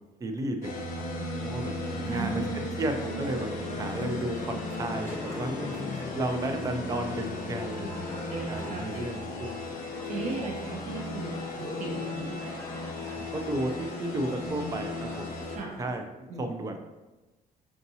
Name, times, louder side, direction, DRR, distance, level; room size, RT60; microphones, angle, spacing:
voice 1, 0.2-0.7 1.2-9.5 13.2-15.3 15.8-16.0 16.4-16.8, right 1 dB, 25° right, 5 dB, 0.4 m, -33 dB
sound 1, 0.6-15.6, left 2 dB, 60° left, 0.7 m, -36 dB
sound 2, 1.5-16.0, left 1 dB, 20° left, 0.7 m, -43 dB
voice 2, 2.1-2.7 8.3-9.1 10.0-12.4 14.2-14.7 15.5-15.7 16.3-16.5, right 4 dB, 60° right, -1 dB, 0.7 m, -37 dB
5.7 x 2.7 x 2.7 m, 1.1 s
cardioid pair, 155°, 15 cm